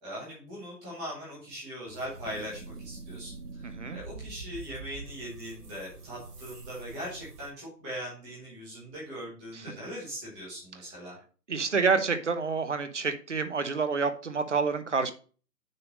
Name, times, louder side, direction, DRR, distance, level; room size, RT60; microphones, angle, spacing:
voice 1, 0.0-11.2, equal, 5° right, -5 dB, 1.2 m, -40 dB
sound 1, 1.9-7.5, right 3 dB, 70° right, 1.4 m, -44 dB
voice 2, 3.6-4.0 11.5-15.1, right 5 dB, 45° right, 11 dB, 0.9 m, -28 dB
6.7 x 3.5 x 6.1 m, 0.38 s
figure-of-eight pair, 150°, 49 cm